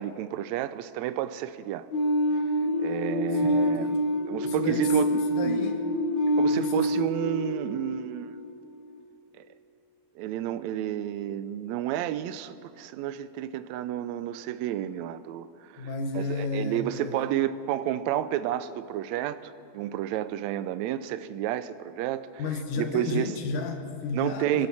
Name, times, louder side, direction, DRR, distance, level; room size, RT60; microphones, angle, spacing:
voice 1, 0.0-1.9 2.8-4.0 4.3-5.7 6.3-8.4 9.4-9.5 10.2-15.9 16.1-22.3 22.8-23.3 24.1-24.7, right 12 dB, 80° right, 13 dB, 1.8 m, -31 dB
sound 1, 1.9-8.7, equal, 30° left, 4.5 m, -26 dB
voice 2, 3.3-4.0 4.4-5.0 5.3-5.8 6.5-6.9 15.8-17.3 22.4-24.7, left 4 dB, 80° left, 4 dB, 2.7 m, -33 dB
27.0 x 12.0 x 4.2 m, 2.5 s
omnidirectional pair, 3.5 m